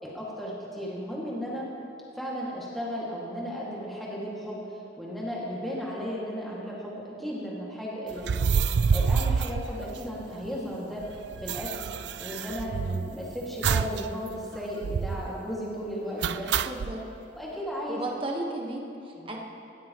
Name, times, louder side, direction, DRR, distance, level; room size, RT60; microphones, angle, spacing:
voice 1, 0.0-1.7 2.1-8.5 8.9-11.0 11.4-11.9 12.2-16.5 17.4-18.0 19.1-19.3, equal, ahead, -7 dB, 2.1 m, -35 dB
sound 1, 8.2-10.5 10.7-10.8 11.0-13.1 13.6-14.0 14.3-14.4 14.8-15.3 16.2-16.9, right 6 dB, 70° right, 0.4 m, -27 dB
voice 2, 16.7-17.0 17.9-19.4, right 1 dB, 30° right, 0 dB, 1.3 m, -34 dB
17.0 x 13.5 x 3.1 m, 2.7 s
head